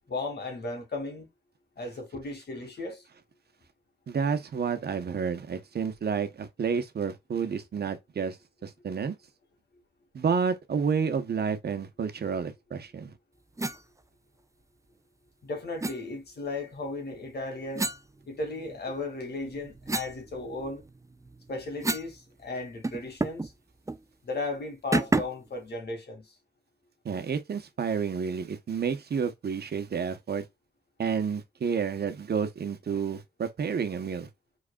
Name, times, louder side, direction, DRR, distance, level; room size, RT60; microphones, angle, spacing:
voice 1, 0.1-1.3 1.8-3.0 15.4-17.9 18.3-20.8 21.5-23.5 24.2-26.4, left 3 dB, 70° left, 2.2 m, -35 dB
voice 2, 4.1-8.4 8.6-9.1 10.1-13.1 27.0-30.4 31.0-34.3, right 6 dB, 70° right, 1.0 m, -30 dB
sound 1, 13.6-13.8 15.8-16.0 17.7-18.8 19.3-22.2 22.4-22.5 22.8-23.5 23.9-24.0 24.9-25.5, right 2 dB, 20° right, 0.5 m, -31 dB
5.0 x 4.1 x 2.3 m
cardioid pair, 65°, 17 cm